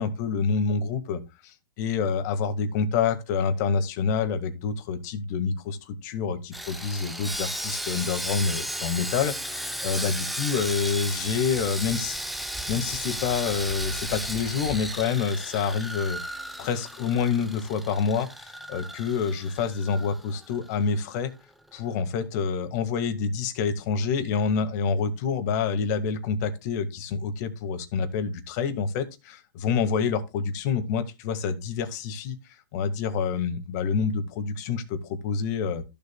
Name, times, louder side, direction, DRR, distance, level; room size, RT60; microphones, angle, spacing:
voice 1, 0.0-12.2 12.7-16.2 16.6-21.3 21.7-32.4 32.7-35.8, left 6 dB, 45° left, 1.7 m, -27 dB
Sawing, 6.5-20.8 21.0-21.2 21.7-21.8, equal, ahead, 0.6 m, -34 dB
14.0 x 7.1 x 2.2 m
hypercardioid pair, 145°, 13 cm